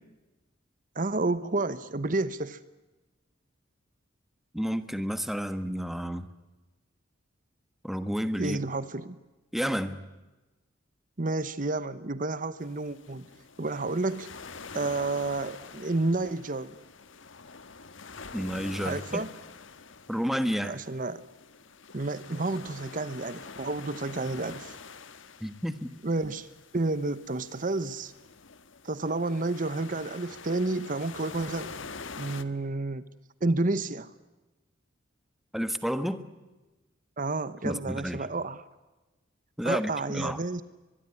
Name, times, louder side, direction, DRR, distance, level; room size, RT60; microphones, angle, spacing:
voice 1, 0.9-2.6 8.4-9.2 11.2-13.3 13.6-14.3 14.7-16.8 18.8-19.3 20.6-21.2 21.9-24.7 26.0-26.5 26.7-28.1 28.8-31.7 32.2-33.0 33.4-34.1 37.2-38.6 39.6-40.6, right 2 dB, 40° right, 15 dB, 0.9 m, -30 dB
voice 2, 4.5-6.3 7.8-8.6 9.5-10.0 18.3-19.2 20.1-20.8 25.4-25.9 35.5-36.3 37.6-38.2 39.6-40.4, equal, ahead, 11 dB, 1.3 m, -30 dB
sound 1, 12.6-32.4, left 4 dB, 75° left, 1.5 m, -46 dB
24.0 x 22.0 x 9.8 m, 1.1 s
head